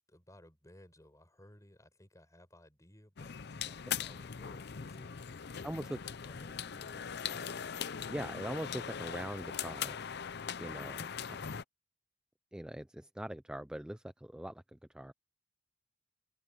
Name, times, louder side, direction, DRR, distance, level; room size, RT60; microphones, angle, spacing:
voice 1, 0.1-5.1 5.6-7.7, left 1 dB, 15° left, 7.3 m, -59 dB
sound 1, 3.2-11.6, left 7 dB, 55° left, 0.6 m, -40 dB
voice 2, 5.6-6.0 8.1-10.0 10.6-11.1 12.5-15.1, right 1 dB, 5° right, 0.3 m, -41 dB
open air
head